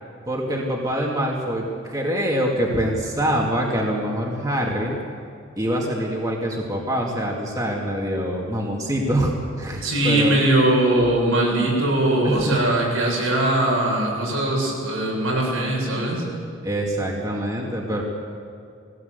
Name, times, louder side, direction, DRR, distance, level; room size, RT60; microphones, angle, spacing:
voice 1, 0.3-5.0 5.6-10.4 12.2-12.6 16.6-18.0, equal, 15° right, -2 dB, 2.2 m, -25 dB
voice 2, 9.8-16.2, right 1 dB, 90° right, -2 dB, 7.3 m, -21 dB
20.0 x 17.0 x 8.2 m, 2.4 s
head